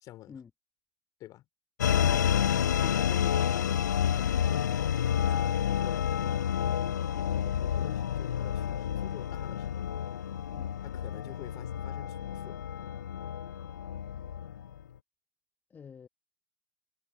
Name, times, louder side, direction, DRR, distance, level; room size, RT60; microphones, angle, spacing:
voice 1, 0.0-0.4 1.2-1.4 2.8-4.9 5.3-6.1 6.5-9.9 10.8-12.6, left 15 dB, 40° left, 3.4 m, -48 dB
sound 1, 1.8-14.8, left 9 dB, 90° left, 0.4 m, -29 dB
voice 2, 15.7-16.1, left 6 dB, 20° left, 1.3 m, -47 dB
hypercardioid pair, 105°, 9 cm